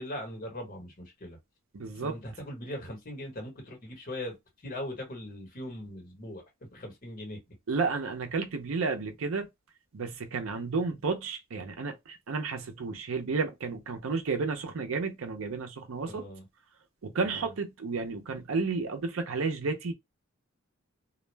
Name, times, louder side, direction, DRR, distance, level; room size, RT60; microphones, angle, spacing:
voice 1, 0.0-1.4 2.0-4.3 4.6-6.4 6.7-7.4 16.1-16.4 17.2-17.5, left 1 dB, 45° left, 1.2 m, -40 dB
voice 2, 1.7-2.2 7.7-9.5 9.9-16.2 17.0-19.9, right 4 dB, 75° right, 0.5 m, -32 dB
2.3 x 2.1 x 3.2 m
head